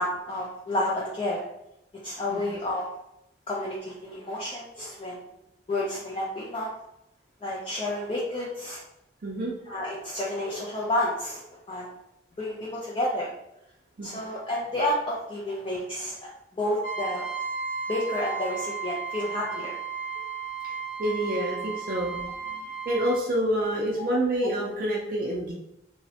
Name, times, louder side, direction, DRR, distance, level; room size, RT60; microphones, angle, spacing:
voice 1, 0.0-1.4 2.0-2.8 3.5-5.2 5.7-6.7 7.4-8.8 9.7-11.4 11.7-11.9 12.4-13.3 14.0-16.2 16.5-17.2 17.9-19.8 24.0-24.1, left 1 dB, 30° left, -5 dB, 0.3 m, -30 dB
voice 2, 9.2-9.5 14.0-14.1 20.6-20.7 21.0-22.2 22.5-25.5, right 1 dB, 50° right, -3 dB, 0.4 m, -27 dB
Trumpet, 16.8-23.2, right 5 dB, 45° left, 0.8 m, -34 dB
3.0 x 2.0 x 2.7 m, 0.85 s
head